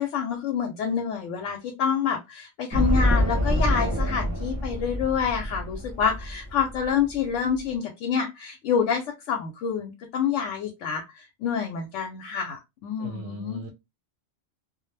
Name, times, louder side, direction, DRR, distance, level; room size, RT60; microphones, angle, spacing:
voice 1, 0.0-11.0 11.4-13.6, left 7 dB, 90° left, 0.9 m, -27 dB
sound 1, 2.7-7.6, equal, 30° right, 0.3 m, -26 dB
voice 2, 13.0-13.7, right 1 dB, 65° right, 0.8 m, -37 dB
2.2 x 2.0 x 3.1 m
omnidirectional pair, 1.2 m